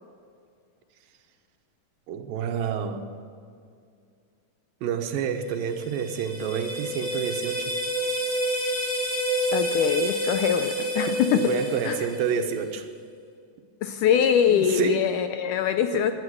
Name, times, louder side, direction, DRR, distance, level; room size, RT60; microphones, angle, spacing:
voice 1, 2.1-3.1 4.8-7.7 11.3-12.9 14.5-15.0 15.9-16.1, right 7 dB, 80° right, 6 dB, 2.7 m, -29 dB
sound 1, 5.6-12.6, right 1 dB, 30° left, 2.3 m, -29 dB
voice 2, 9.5-11.5 11.8-12.0 13.8-16.1, left 8 dB, 80° left, 9 dB, 1.9 m, -23 dB
18.0 x 11.5 x 6.3 m, 2.3 s
omnidirectional pair, 4.1 m